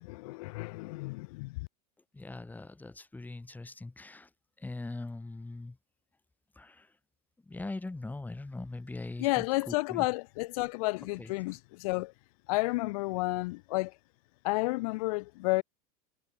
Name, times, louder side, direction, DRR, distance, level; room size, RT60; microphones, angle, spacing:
voice 1, 0.0-1.7 9.2-12.1 12.5-13.9 14.4-15.6, left 23 dB, 70° left, 2.0 m, -31 dB
voice 2, 2.1-4.3 4.6-5.8 6.5-6.9 7.5-10.1 11.2-11.3, left 2 dB, 10° left, 3.0 m, -41 dB
hypercardioid pair, 110°, 19 cm